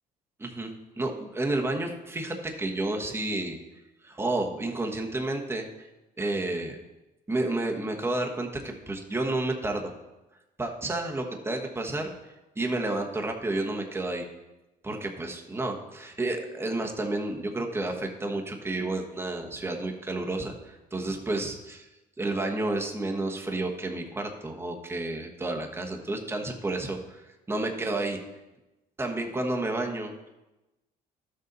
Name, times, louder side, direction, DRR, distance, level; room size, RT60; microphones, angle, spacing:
voice 1, 0.4-3.6 4.0-5.9 6.2-6.8 7.3-9.9 10.6-12.1 12.6-14.3 14.8-21.9 22.2-28.2 29.0-30.1, right 2 dB, 15° right, 2 dB, 1.2 m, -31 dB
12.0 x 6.7 x 4.0 m, 1.0 s
cardioid pair, 110°, 17 cm